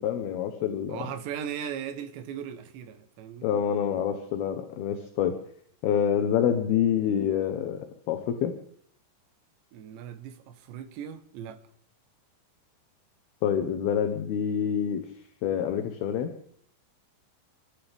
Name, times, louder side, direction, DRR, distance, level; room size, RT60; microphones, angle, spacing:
voice 1, 0.0-1.0 3.4-5.3 5.8-8.5 13.4-15.1 15.4-16.3, left 9 dB, 70° left, 2.6 m, -27 dB
voice 2, 0.9-3.5 9.7-11.6, right 9 dB, 75° right, 3.4 m, -38 dB
30.0 x 13.0 x 3.6 m
omnidirectional pair, 5.4 m